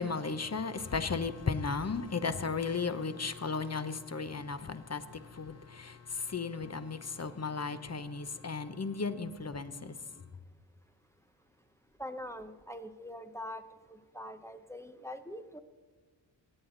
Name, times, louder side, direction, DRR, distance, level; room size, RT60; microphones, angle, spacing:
voice 1, 0.0-9.9, left 4 dB, 30° left, 1.0 m, -35 dB
voice 2, 12.0-13.6 13.9-15.6, left 1 dB, 5° left, 0.8 m, -43 dB
22.0 x 8.7 x 4.0 m
cardioid pair, 45°, 50 cm